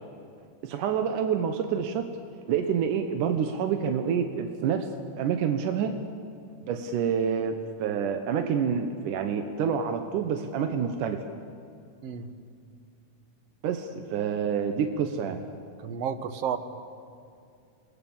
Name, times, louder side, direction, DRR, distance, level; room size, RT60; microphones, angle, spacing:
voice 1, 0.6-2.1 2.5-4.9 5.2-5.9 6.6-11.3 13.6-15.4, right 7 dB, 90° right, 6 dB, 2.6 m, -27 dB
voice 2, 15.8-16.6, right 8 dB, 65° right, 10 dB, 1.9 m, -31 dB
28.5 x 20.5 x 7.2 m, 2.4 s
omnidirectional pair, 3.5 m